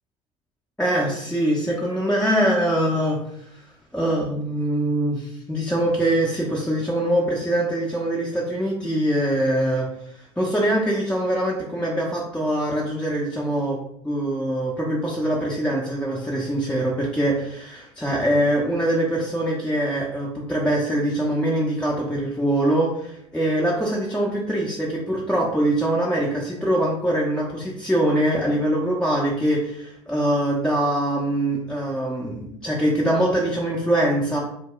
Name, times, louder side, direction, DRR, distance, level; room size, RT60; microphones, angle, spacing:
voice 1, 0.8-3.6 3.9-13.8 14.0-34.4, right 1 dB, 5° left, -4 dB, 0.6 m, -23 dB
2.1 x 2.1 x 3.7 m, 0.74 s
hypercardioid pair, 70°, 15 cm